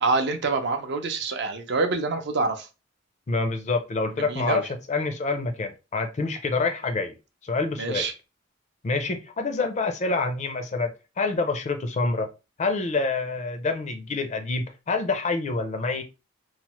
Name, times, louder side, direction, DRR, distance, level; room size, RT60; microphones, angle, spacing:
voice 1, 0.0-2.7 4.3-4.6 7.8-8.1, right 3 dB, 60° right, 6 dB, 0.5 m, -26 dB
voice 2, 3.3-7.1 7.4-8.1 8.8-12.3 12.6-16.0, left 3 dB, 35° left, 6 dB, 0.4 m, -27 dB
3.1 x 2.0 x 2.9 m, 0.28 s
head